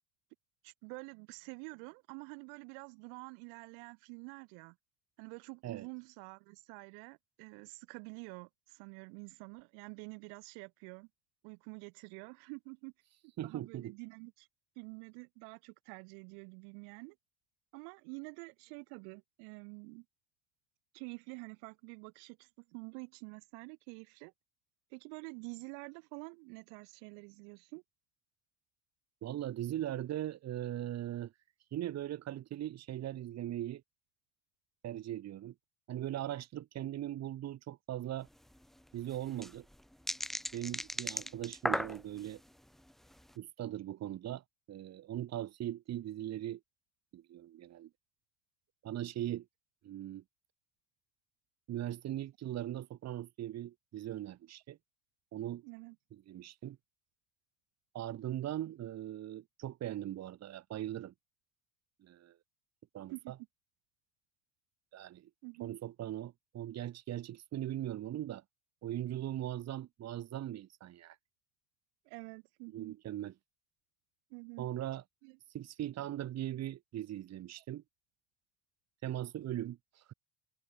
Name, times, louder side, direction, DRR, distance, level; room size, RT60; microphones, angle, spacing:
voice 1, 0.6-4.8 5.2-11.1 11.4-12.9 13.4-14.5 14.8-17.2 17.7-20.1 20.9-24.3 24.9-27.8 55.6-56.0 63.1-63.3 65.4-65.8 72.1-73.0 74.3-74.7 75.2-75.4, right 40 dB or more, 70° right, 7.3 m, -48 dB
voice 2, 13.4-13.9 29.2-31.3 31.7-33.8 34.8-35.5 35.9-38.3 38.9-39.7 40.5-42.4 43.4-46.6 47.1-47.9 48.8-49.5 49.8-50.2 51.7-54.8 55.3-55.6 56.3-56.8 57.9-61.1 62.0-62.4 62.9-63.3 64.9-65.3 65.6-68.4 68.8-71.2 72.7-73.3 74.6-75.0 75.5-77.8 79.0-80.1, right 12 dB, 40° right, 5.4 m, -40 dB
sound 1, 38.3-38.4 38.6-38.7 39.1-42.4 42.9-43.2, equal, ahead, 0.5 m, -36 dB
supercardioid pair, 135°, 40 cm